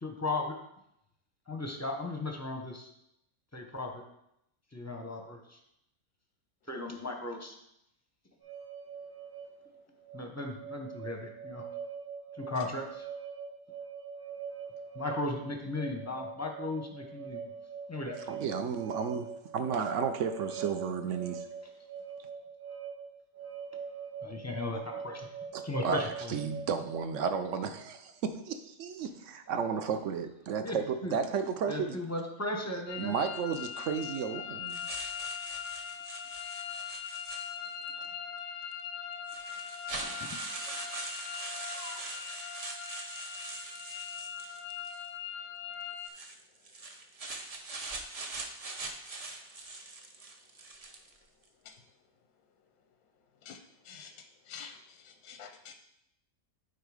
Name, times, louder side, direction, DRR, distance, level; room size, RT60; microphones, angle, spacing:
voice 1, 0.0-0.6 1.5-2.9 3.5-4.0 4.7-5.6 6.7-7.6 10.1-11.6 12.4-13.0 14.9-17.5 17.9-18.2 24.2-25.3 25.6-26.3 30.6-30.7 31.0-31.1 31.7-33.1 40.0-40.3 41.7-42.0, left 2 dB, 15° left, 3 dB, 0.6 m, -36 dB
sound 1, 8.4-27.2, right 7 dB, 90° right, 2.8 m, -43 dB
voice 2, 18.3-19.3 19.5-21.5 25.5-32.0 33.0-34.8, right 6 dB, 65° right, 8 dB, 0.8 m, -33 dB
sound 2, 32.9-46.1, left 8 dB, 70° left, 0.7 m, -41 dB
sound 3, 34.7-37.9 38.7-38.8 39.3-45.1 46.0-51.2, right 3 dB, 45° right, 0.4 m, -42 dB
voice 3, 54.4-55.7, left 7 dB, 90° left, 7 dB, 1.2 m, -48 dB
9.1 x 3.9 x 4.9 m, 0.80 s
omnidirectional pair, 1.6 m